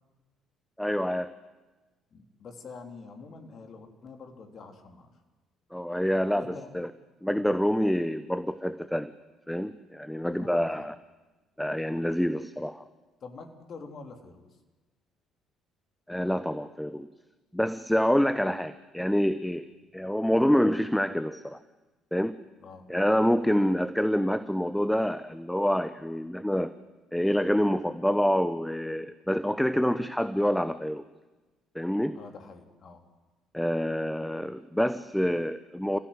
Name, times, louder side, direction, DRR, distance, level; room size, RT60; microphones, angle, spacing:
voice 1, 0.8-1.3 5.7-6.9 7.2-9.1 9.5-10.9 11.6-12.8 16.1-17.1 17.5-19.6 19.9-21.6 22.1-22.4 22.9-26.7 27.1-31.0 31.7-32.2 33.5-36.0, equal, 5° left, 13 dB, 1.1 m, -27 dB
voice 2, 2.1-5.1 6.3-6.7 10.3-10.8 13.2-14.5 19.8-19.9 22.6-22.8 32.1-33.0, left 4 dB, 45° left, 5 dB, 3.6 m, -46 dB
30.0 x 16.0 x 9.6 m, 1.2 s
figure-of-eight pair, 50°, 0 cm